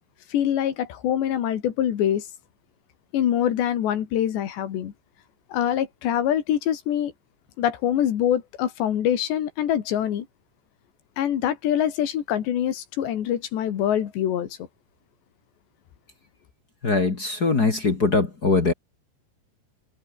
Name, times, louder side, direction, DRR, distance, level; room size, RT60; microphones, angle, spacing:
voice 1, 0.3-2.3 3.1-4.9 5.5-7.1 7.6-10.3 11.2-14.5, left 10 dB, 70° left, 4.3 m, -24 dB
voice 2, 16.8-18.7, left 3 dB, 35° left, 1.7 m, -21 dB
omnidirectional pair, 5.4 m